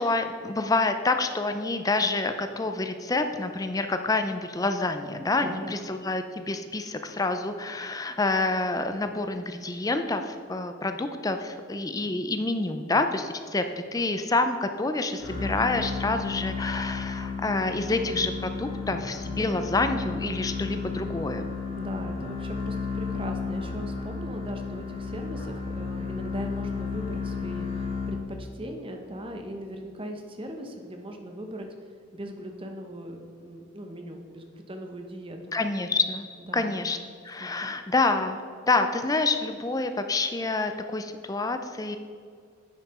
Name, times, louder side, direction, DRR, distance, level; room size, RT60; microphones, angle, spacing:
voice 1, 0.0-13.6 13.9-21.4 35.5-36.3 36.5-37.0 37.2-42.0, left 3 dB, 20° left, 8 dB, 0.4 m, -27 dB
voice 2, 5.3-5.9 21.8-31.7 32.1-35.4 36.5-36.7 37.4-37.7, right 1 dB, 25° right, 4 dB, 0.9 m, -39 dB
sound 1, 15.2-28.6, left 4 dB, 70° left, 2.3 m, -33 dB
9.7 x 5.7 x 4.3 m, 2.2 s
head